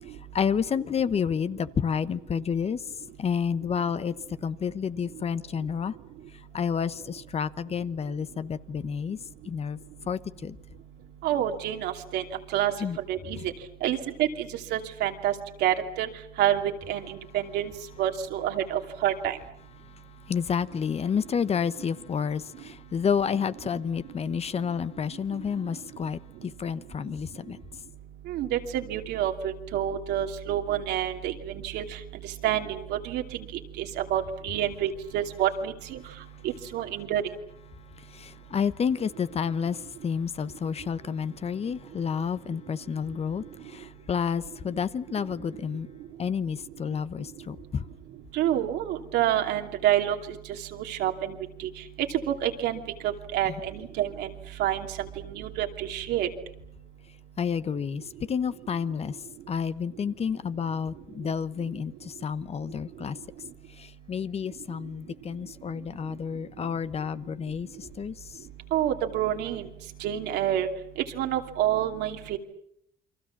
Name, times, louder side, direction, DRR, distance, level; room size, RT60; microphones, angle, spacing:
voice 1, 0.3-2.8 3.2-4.1 4.4-5.9 6.5-9.2 9.5-9.8 10.1-10.6 12.8-13.0 13.4-13.5 20.3-27.6 38.1-39.8 40.0-45.9 46.2-47.8 57.4-58.0 58.3-59.1 59.5-63.2 64.1-67.7 68.0-68.1, left 7 dB, 35° left, 1.0 m, -30 dB
voice 2, 11.2-12.2 12.5-12.7 13.1-13.4 13.8-15.3 15.6-16.1 16.4-17.7 18.0-19.4 28.3-31.8 32.4-33.2 33.8-36.0 36.4-37.2 48.3-50.2 50.8-51.3 52.3-54.3 54.6-54.9 55.3-56.3 68.7-69.7 70.0-70.7 71.2-72.4, right 11 dB, 85° right, 2.8 m, -28 dB
29.0 x 23.5 x 7.3 m
cardioid pair, 110°, 17 cm